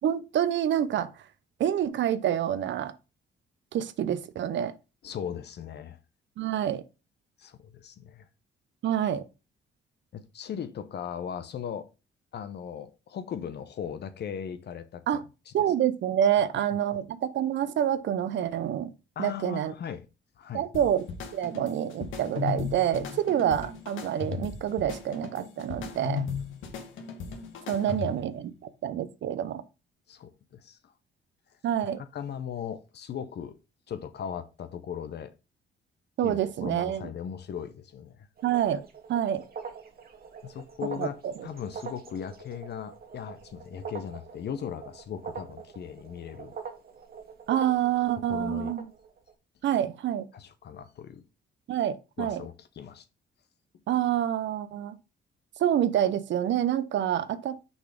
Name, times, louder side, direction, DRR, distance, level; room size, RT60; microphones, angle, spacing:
voice 1, 0.0-1.1 1.6-2.9 3.7-4.7 6.4-6.8 8.8-9.2 15.1-15.2 15.5-18.9 19.2-19.7 20.5-21.0 21.3-26.2 27.7-28.5 28.8-29.6 31.6-32.0 36.2-37.1 38.4-38.8 39.1-39.4 41.0-41.3 47.5-48.8 49.6-50.3 51.7-52.4 53.9-54.9 55.6-57.6, right 10 dB, 65° right, 0.8 m, -27 dB
voice 2, 5.0-6.0 7.4-8.3 10.1-11.9 12.3-15.2 15.5-15.6 19.2-20.1 20.4-20.7 22.9-23.2 27.8-28.0 30.1-30.9 32.0-33.6 33.9-35.3 36.2-38.3 40.4-46.5 48.3-48.7 50.3-51.3 52.2-53.0, left 8 dB, 60° left, 0.8 m, -38 dB
sound 1, 20.7-28.4, left 6 dB, 80° left, 1.4 m, -36 dB
sound 2, 38.4-49.3, right 6 dB, 50° right, 1.5 m, -44 dB
6.1 x 4.1 x 5.1 m
cardioid pair, 90°, 20 cm